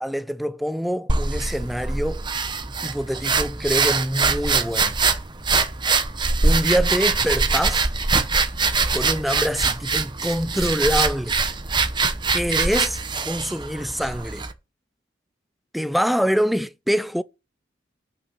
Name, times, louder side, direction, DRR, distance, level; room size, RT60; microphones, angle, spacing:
voice 1, 0.0-2.3 2.8-4.9 6.4-7.9 8.9-11.4 12.3-13.0 13.2-14.4 15.7-17.2, equal, ahead, 0.5 m, -25 dB
sound 1, 1.1-14.5, right 4 dB, 25° right, 0.9 m, -23 dB
8.3 x 5.8 x 6.6 m
head